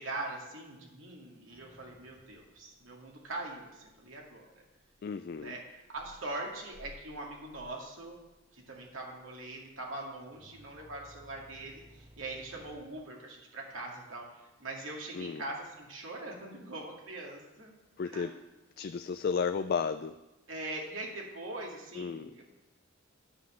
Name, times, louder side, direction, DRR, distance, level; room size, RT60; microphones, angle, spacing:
voice 1, 0.0-4.5 5.4-8.2 8.5-14.3 14.6-17.7 18.0-18.3 20.5-22.4, right 2 dB, 80° right, -1 dB, 2.2 m, -42 dB
sound 1, 1.5-12.8, equal, 15° right, 1.1 m, -59 dB
voice 2, 5.0-5.5 15.1-15.4 18.0-18.3 18.8-20.1 22.0-22.3, left 5 dB, 50° left, 10 dB, 0.3 m, -33 dB
9.9 x 5.7 x 7.3 m, 1.1 s
head